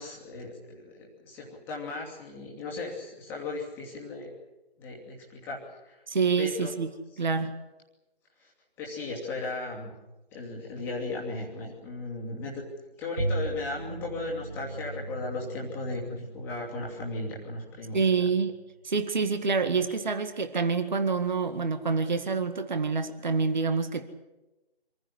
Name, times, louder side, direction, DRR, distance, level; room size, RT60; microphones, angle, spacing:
voice 1, 0.0-4.3 4.8-5.6 5.8-6.0 6.4-6.7 8.4-8.5 8.8-9.9 10.3-12.6 13.0-18.3, left 3 dB, 5° left, -3 dB, 2.6 m, -36 dB
voice 2, 6.1-6.9 7.2-7.5 17.9-18.5 18.8-24.1, right 5 dB, 45° right, 9 dB, 1.9 m, -27 dB
Bowed string instrument, 13.2-18.8, right 3 dB, 20° right, 0.7 m, -38 dB
26.5 x 15.5 x 10.0 m, 1.0 s
figure-of-eight pair, 160°, 31 cm